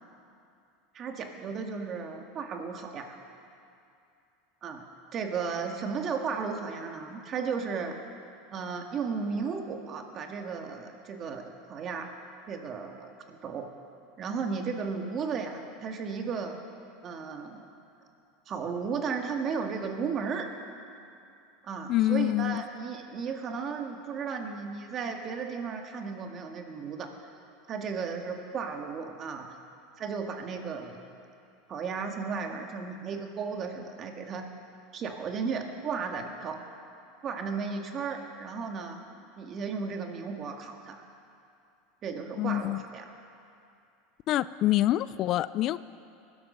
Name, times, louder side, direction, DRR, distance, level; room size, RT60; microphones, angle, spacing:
voice 1, 0.9-3.2 4.6-4.9 5.1-8.0 8.5-12.1 12.5-13.7 14.2-16.6 17.0-17.7 18.5-20.5 21.6-27.1 27.7-29.6 30.0-31.0 31.7-34.5 34.9-36.6 37.2-39.0 39.4-41.0 42.0-43.1, right 5 dB, 35° right, 4 dB, 1.8 m, -34 dB
voice 2, 21.9-22.6 42.4-42.8 44.3-45.8, left 15 dB, 45° left, 17 dB, 0.4 m, -26 dB
20.5 x 12.0 x 5.5 m, 2.5 s
supercardioid pair, 120°, 0 cm